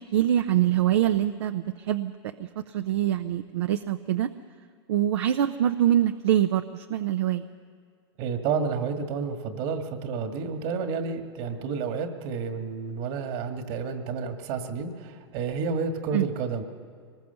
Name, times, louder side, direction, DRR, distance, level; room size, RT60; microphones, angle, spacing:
voice 1, 0.0-4.3 4.9-7.5 16.1-16.3, right 11 dB, 70° right, 9 dB, 0.7 m, -24 dB
voice 2, 8.2-16.6, right 5 dB, 55° right, 6 dB, 2.0 m, -30 dB
24.0 x 20.0 x 6.9 m, 2.1 s
hypercardioid pair, 105°, 14 cm